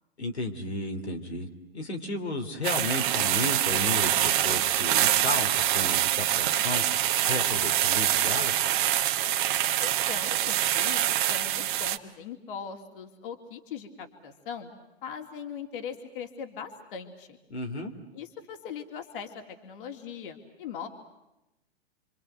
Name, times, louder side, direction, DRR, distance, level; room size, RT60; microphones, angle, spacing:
voice 1, 0.2-8.5 17.5-17.9, left 2 dB, 85° left, 2 dB, 3.1 m, -33 dB
sound 1, 2.6-12.0, right 12 dB, 50° right, 1.3 m, -25 dB
voice 2, 9.8-14.7 15.0-17.3 18.1-20.9, left 7 dB, 55° left, 4 dB, 2.9 m, -40 dB
29.5 x 24.5 x 8.0 m, 0.93 s
figure-of-eight pair, 110°, 32 cm